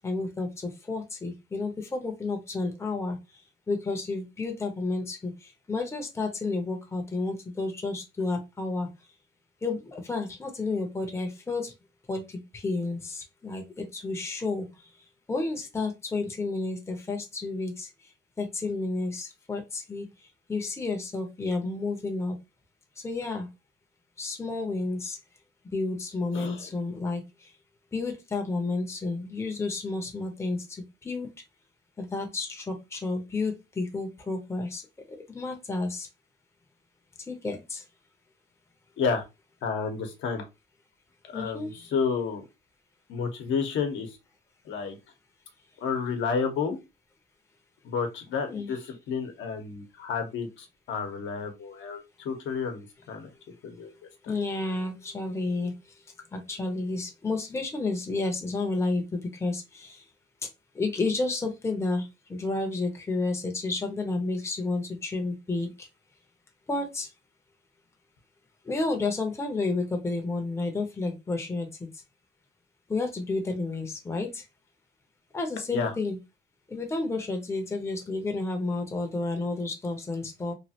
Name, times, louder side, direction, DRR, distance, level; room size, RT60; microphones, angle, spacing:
voice 1, 0.0-3.4 3.7-8.9 9.6-11.7 12.1-14.9 15.3-17.9 18.4-22.3 23.0-23.5 24.2-25.2 25.7-27.5 27.9-31.3 32.0-36.1 37.3-37.8 41.3-41.9 48.5-48.7 54.3-56.0 56.3-60.1 60.7-65.9 66.7-67.1 68.6-71.9 72.9-74.4 75.3-76.2 76.7-80.5, left 3 dB, 15° left, 3 dB, 0.7 m, -31 dB
voice 2, 26.3-26.6 39.0-39.2 39.6-40.4 41.3-42.4 43.1-44.2 44.6-45.0 45.8-46.8 47.8-53.3 53.6-53.9 54.2-54.3 75.7-75.9, left 5 dB, 70° left, 4 dB, 0.9 m, -31 dB
3.1 x 2.4 x 2.8 m, 0.24 s
cardioid pair, 125°, 20 cm